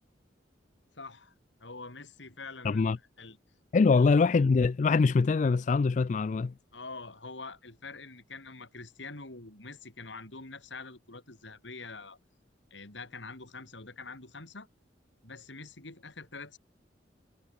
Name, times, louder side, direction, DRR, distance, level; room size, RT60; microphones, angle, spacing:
voice 1, 0.9-1.3 1.6-3.4 3.9-4.0 6.7-12.2 12.7-14.7 15.2-16.6, left 3 dB, 80° left, 3.4 m, -45 dB
voice 2, 2.6-3.0 3.7-6.5, left 4 dB, 40° left, 0.3 m, -23 dB
head